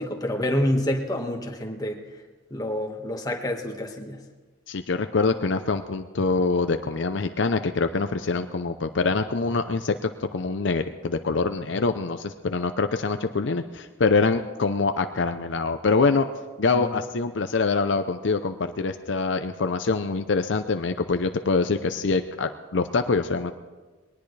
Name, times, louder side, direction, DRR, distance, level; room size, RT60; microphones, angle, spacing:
voice 1, 0.0-2.0 2.5-4.2 16.7-17.0, left 1 dB, 20° left, 2 dB, 1.5 m, -28 dB
voice 2, 4.7-16.3 16.6-23.5, left 4 dB, 65° left, 8 dB, 0.6 m, -25 dB
21.5 x 19.0 x 3.3 m, 1.3 s
head